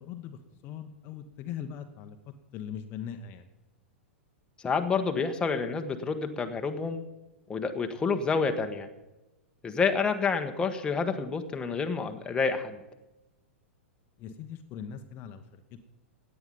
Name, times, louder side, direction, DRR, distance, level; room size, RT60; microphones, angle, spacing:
voice 1, 0.0-2.2 2.5-3.5 14.2-15.8, left 8 dB, 35° left, 7 dB, 1.1 m, -40 dB
voice 2, 4.6-7.0 7.5-8.9 9.6-12.8, left 5 dB, 15° left, 6 dB, 1.3 m, -28 dB
16.5 x 9.5 x 5.4 m, 1.0 s
figure-of-eight pair, 100°, 7 cm